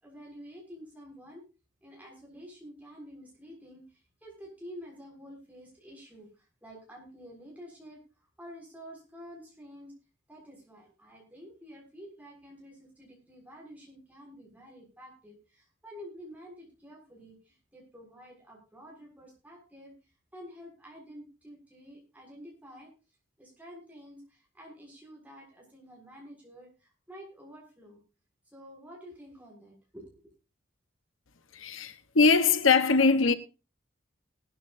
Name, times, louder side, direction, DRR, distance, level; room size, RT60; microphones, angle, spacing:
voice 1, 0.0-1.4 1.8-9.9 10.3-22.9 23.4-28.0 28.5-30.2, equal, 10° right, 6.6 m, -49 dB
voice 2, 31.5-33.3, left 4 dB, 80° left, 1.1 m, -22 dB
19.0 x 13.0 x 2.7 m
head